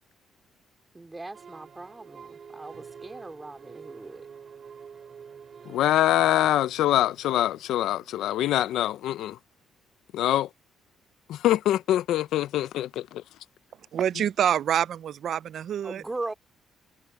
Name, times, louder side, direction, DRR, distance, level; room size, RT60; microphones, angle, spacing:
voice 1, 0.9-4.3 15.8-16.3, right 2 dB, 20° right, 3.0 m, -39 dB
sound 1, 1.3-8.3, right 6 dB, 50° right, 2.8 m, -48 dB
voice 2, 5.7-9.4 10.1-10.5 11.3-13.2, left 13 dB, 85° left, 0.6 m, -24 dB
voice 3, 13.9-16.0, right 9 dB, 65° right, 0.5 m, -26 dB
cardioid pair, 90°, 0 cm